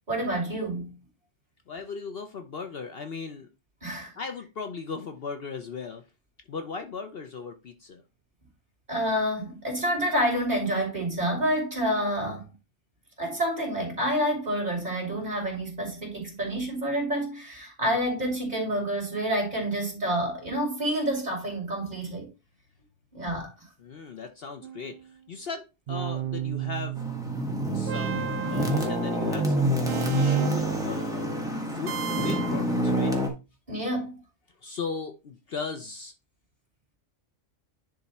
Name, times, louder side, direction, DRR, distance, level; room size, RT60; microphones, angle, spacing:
voice 1, 0.1-0.9 3.8-4.1 8.9-12.4 13.2-22.3 23.1-23.7 33.7-34.2, right 1 dB, 35° right, 3.6 m, -28 dB
voice 2, 1.7-3.5 4.2-6.0 6.5-8.0 23.8-27.0 27.7-29.7 30.1-31.3 31.7-33.1 34.6-36.1, left 5 dB, 55° left, 0.9 m, -37 dB
sound 1, 24.6-25.1 25.9-30.9 31.9-32.7, right 10 dB, 55° right, 0.8 m, -35 dB
sound 2, 27.0-33.3, right 1 dB, 5° right, 1.5 m, -27 dB
10.5 x 3.5 x 4.2 m
omnidirectional pair, 1.3 m